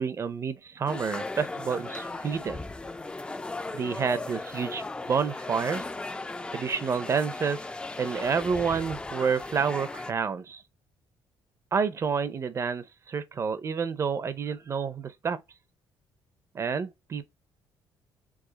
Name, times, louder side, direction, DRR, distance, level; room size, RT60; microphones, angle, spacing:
voice 1, 0.0-2.7 3.7-5.9 6.5-7.6 8.0-10.6 11.7-15.4 16.5-17.3, right 6 dB, 35° right, 0.5 m, -29 dB
sound 1, 0.9-10.1, left 2 dB, 10° left, 0.3 m, -37 dB
4.8 x 2.4 x 3.9 m
cardioid pair, 130°, 8 cm